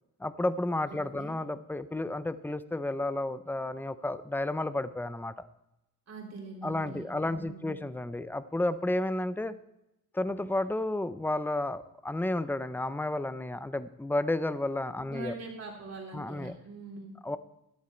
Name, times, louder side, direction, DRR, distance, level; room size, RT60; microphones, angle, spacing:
voice 1, 0.2-5.3 6.6-9.5 10.1-15.3 16.1-16.5 17.2-17.4, left 1 dB, 5° left, 13 dB, 0.4 m, -32 dB
voice 2, 0.9-1.3 6.1-7.8 15.0-17.1, right 3 dB, 55° right, -1 dB, 3.4 m, -43 dB
13.0 x 10.5 x 4.3 m, 0.91 s
wide cardioid pair, 175°, 32 cm